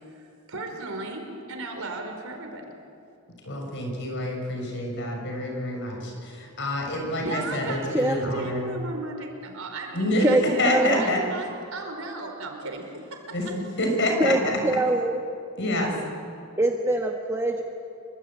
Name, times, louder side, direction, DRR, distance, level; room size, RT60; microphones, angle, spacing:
voice 1, 0.0-2.6 7.2-13.2 14.0-14.2, right 2 dB, 70° right, 4 dB, 4.8 m, -35 dB
voice 2, 3.4-8.6 9.9-11.2 13.3-14.5 15.6-15.9, left 1 dB, 55° left, 2 dB, 6.7 m, -27 dB
voice 3, 10.2-11.0 14.2-15.2 16.6-17.6, right 1 dB, 15° right, 1 dB, 1.4 m, -23 dB
27.5 x 24.0 x 8.9 m, 2.4 s
head